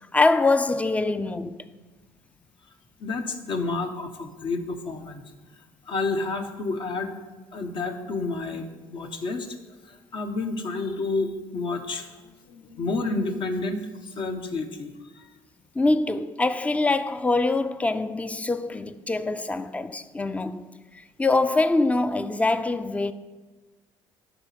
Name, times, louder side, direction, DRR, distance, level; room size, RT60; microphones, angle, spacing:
voice 1, 0.1-1.6 15.8-20.6 21.2-23.1, left 2 dB, 15° left, 0.5 m, -24 dB
voice 2, 3.0-5.2 5.9-7.1 7.5-9.6 9.9-12.1 12.5-13.8 14.1-15.3, left 3 dB, 55° left, 1.2 m, -30 dB
11.0 x 4.1 x 7.5 m
supercardioid pair, 70°, 10 cm